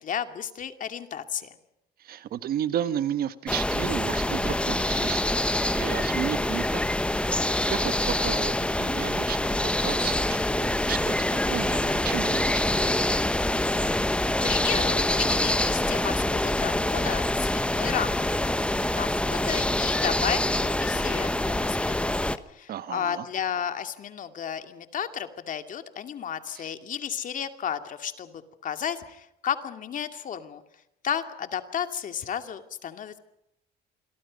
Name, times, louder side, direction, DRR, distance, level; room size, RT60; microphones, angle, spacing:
voice 1, 0.0-1.5 14.4-18.4 18.9-30.6 31.0-33.2, left 8 dB, 50° left, 8 dB, 2.4 m, -33 dB
voice 2, 2.0-6.8 7.7-12.8 22.7-23.3 26.5-26.7, right 10 dB, 60° right, 13 dB, 1.4 m, -33 dB
sound 1, 3.5-22.4, left 1 dB, 5° left, 1.1 m, -25 dB
27.5 x 23.0 x 5.3 m, 0.80 s
cardioid pair, 110°, 17 cm